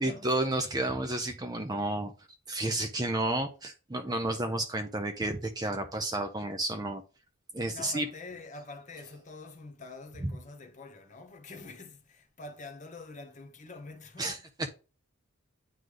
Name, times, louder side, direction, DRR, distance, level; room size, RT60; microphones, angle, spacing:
voice 1, 0.0-2.1 2.5-7.0 7.5-8.1 10.2-10.3 14.2-14.7, right 1 dB, 20° right, 0.6 m, -31 dB
voice 2, 7.7-14.4, left 3 dB, 35° left, 1.1 m, -46 dB
9.3 x 3.2 x 3.8 m
head